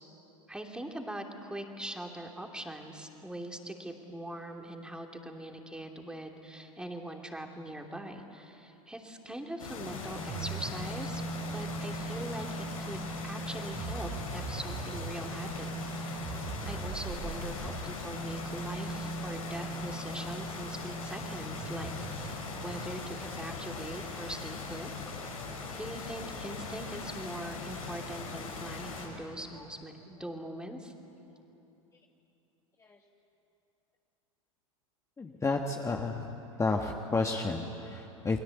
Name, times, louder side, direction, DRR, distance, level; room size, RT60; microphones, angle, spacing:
voice 1, 0.5-11.2 11.5-16.3 16.6-24.9 25.7-30.9, right 1 dB, 5° right, 3 dB, 2.9 m, -42 dB
sound 1, 9.6-29.1, left 4 dB, 85° left, 5.6 m, -40 dB
sound 2, 10.1-22.9, right 3 dB, 40° right, 5.6 m, -40 dB
voice 2, 35.2-36.3 36.6-38.4, left 3 dB, 15° left, 2 dB, 1.5 m, -31 dB
29.0 x 21.5 x 8.4 m, 2.9 s
hypercardioid pair, 85°, 17 cm